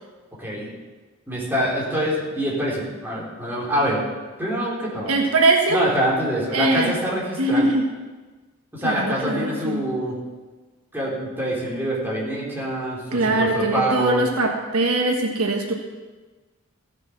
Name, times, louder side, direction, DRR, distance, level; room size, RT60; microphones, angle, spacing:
voice 1, 0.4-0.7 1.3-4.0 4.4-5.1 5.7-7.7 8.7-10.2 10.9-14.2, right 1 dB, 10° right, -6 dB, 3.7 m, -25 dB
voice 2, 5.1-5.8 6.5-6.9 7.4-7.9 8.8-9.8 13.1-15.7, right 2 dB, 85° right, 2 dB, 1.5 m, -21 dB
15.0 x 6.7 x 6.1 m, 1.3 s
head